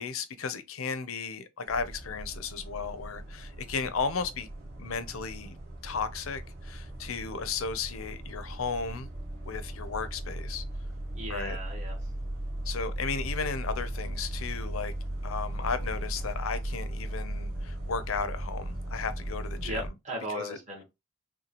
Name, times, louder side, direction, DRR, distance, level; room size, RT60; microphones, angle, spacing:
voice 1, 0.0-4.5 4.8-5.6 5.8-9.1 9.4-10.6 11.3-11.6 12.6-14.9 15.2-19.9 20.3-20.6, left 5 dB, 75° left, 0.6 m, -34 dB
Bus ride, 1.7-19.9, right 1 dB, 55° right, 2.0 m, -37 dB
voice 2, 11.1-12.0 19.6-20.8, right 1 dB, 35° right, 1.3 m, -37 dB
5.9 x 2.2 x 3.0 m
head